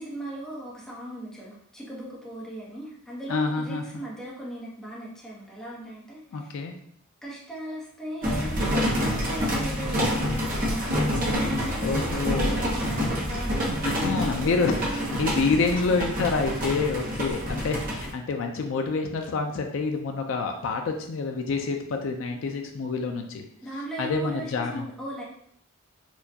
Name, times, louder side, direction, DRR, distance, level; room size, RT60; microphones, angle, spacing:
voice 1, 0.0-6.5 7.2-15.4 17.0-17.1 23.6-25.2, right 1 dB, ahead, -7 dB, 0.8 m, -38 dB
voice 2, 3.3-3.9 6.3-6.7 11.1-11.2 11.8-12.6 13.8-23.4 24.0-24.8, left 4 dB, 60° left, 4 dB, 0.3 m, -27 dB
sound 1, 8.2-18.1, equal, 40° right, 0.7 m, -27 dB
4.3 x 2.2 x 2.7 m, 0.68 s
head